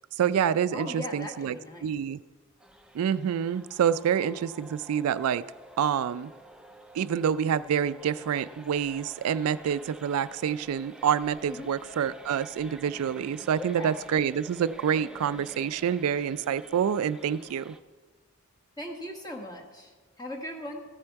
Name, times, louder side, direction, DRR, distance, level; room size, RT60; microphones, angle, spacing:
voice 1, 0.2-1.6 1.8-2.2 2.9-5.4 5.8-6.3 6.9-17.7, right 8 dB, 80° right, 16 dB, 0.3 m, -27 dB
voice 2, 0.7-1.9 11.5-11.7 13.6-14.1 18.8-20.8, left 1 dB, 20° left, 1 dB, 1.3 m, -39 dB
sound 1, 2.6-17.8, right 1 dB, 5° right, 0.4 m, -49 dB
14.0 x 8.7 x 4.6 m, 1.4 s
head